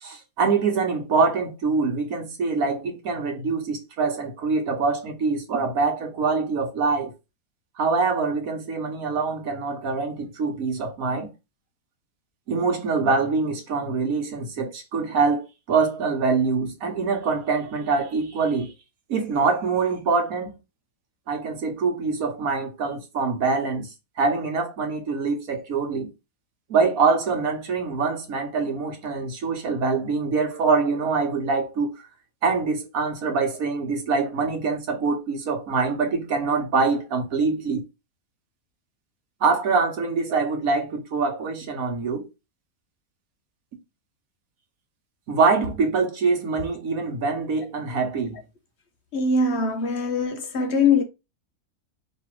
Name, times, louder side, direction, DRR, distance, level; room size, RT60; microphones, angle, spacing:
voice 1, 0.0-7.1 7.8-11.3 12.5-18.7 19.1-20.5 21.3-23.9 24.2-26.1 26.7-31.9 32.4-37.8 39.4-42.3 45.3-48.4, right 4 dB, 70° right, 1.5 m, -24 dB
voice 2, 49.1-51.0, left 4 dB, 55° left, 0.9 m, -22 dB
3.3 x 3.0 x 4.5 m
omnidirectional pair, 1.6 m